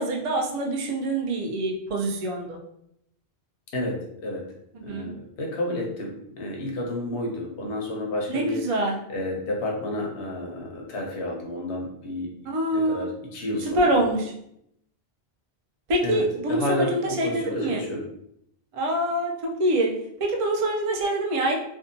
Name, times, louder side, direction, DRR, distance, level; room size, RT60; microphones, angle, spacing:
voice 1, 0.0-2.6 4.8-5.1 8.3-8.9 12.4-13.1 13.7-14.3 15.9-17.8 18.7-19.9 20.2-21.6, right 1 dB, 50° right, 0 dB, 0.4 m, -25 dB
voice 2, 3.7-4.5 4.8-8.6 9.1-12.3 12.7-14.0 16.0-18.0, left 1 dB, 85° left, 0 dB, 0.9 m, -30 dB
2.7 x 2.3 x 2.5 m, 0.75 s
omnidirectional pair, 1.1 m